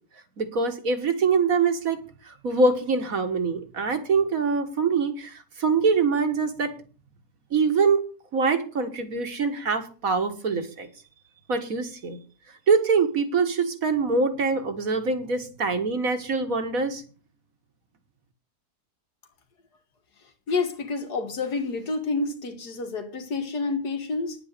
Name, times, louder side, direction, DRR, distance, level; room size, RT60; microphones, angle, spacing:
voice 1, 0.4-2.0 2.2-6.7 7.5-8.0 8.3-10.9 11.5-12.2 12.7-17.0, right 4 dB, 60° right, 2.1 m, -24 dB
voice 2, 20.5-24.4, left 3 dB, 80° left, 2.3 m, -29 dB
9.9 x 9.0 x 6.7 m
omnidirectional pair, 1.7 m